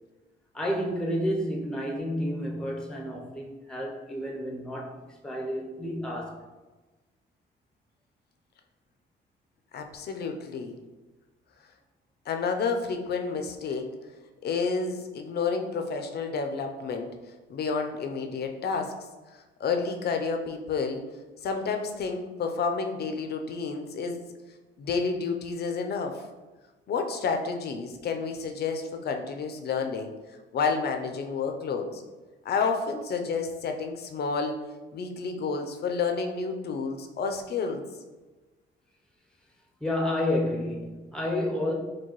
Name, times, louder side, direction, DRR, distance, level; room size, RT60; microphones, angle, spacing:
voice 1, 0.5-6.4 39.8-41.7, left 1 dB, 5° left, 0 dB, 0.6 m, -30 dB
voice 2, 9.7-10.7 12.3-13.9 14.4-17.1 17.5-18.9 19.3-21.0 21.4-24.2 24.8-26.3 26.9-30.1 30.5-32.0 32.4-34.6 34.9-37.8, left 5 dB, 55° left, 5 dB, 0.5 m, -30 dB
4.5 x 2.2 x 2.9 m, 1.2 s
cardioid pair, 90°, 20 cm